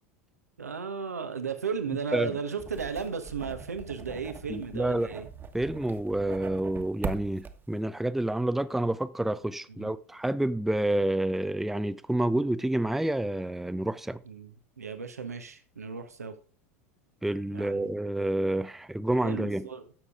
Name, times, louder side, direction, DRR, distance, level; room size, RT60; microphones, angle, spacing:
voice 1, 0.6-5.3 9.8-9.9 14.2-16.3 17.5-17.9 19.2-19.8, right 5 dB, 90° right, 1.2 m, -35 dB
sound 1, 2.6-7.8, right 5 dB, 25° right, 1.4 m, -41 dB
voice 2, 4.5-5.1 5.5-14.2 17.2-19.7, right 1 dB, 5° right, 0.5 m, -28 dB
12.0 x 7.0 x 3.7 m
hypercardioid pair, 85°, 8 cm